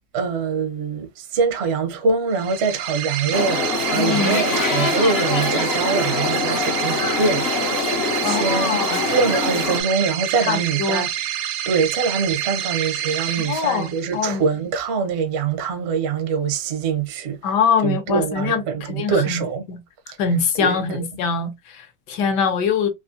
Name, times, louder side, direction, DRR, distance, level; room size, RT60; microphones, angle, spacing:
voice 1, 0.1-8.8 9.1-11.1 11.7-17.4 17.8-19.6 20.6-21.0, right 5 dB, 65° right, 0.6 m, -24 dB
sound 1, 2.3-14.3, right 11 dB, 85° right, 1.3 m, -27 dB
sound 2, 3.3-9.8, left 4 dB, 55° left, 0.7 m, -24 dB
voice 2, 4.0-4.4 8.2-9.1 10.4-11.0 13.4-14.4 17.4-19.8 20.2-22.9, left 6 dB, 70° left, 1.3 m, -23 dB
3.8 x 2.5 x 2.5 m
omnidirectional pair, 2.0 m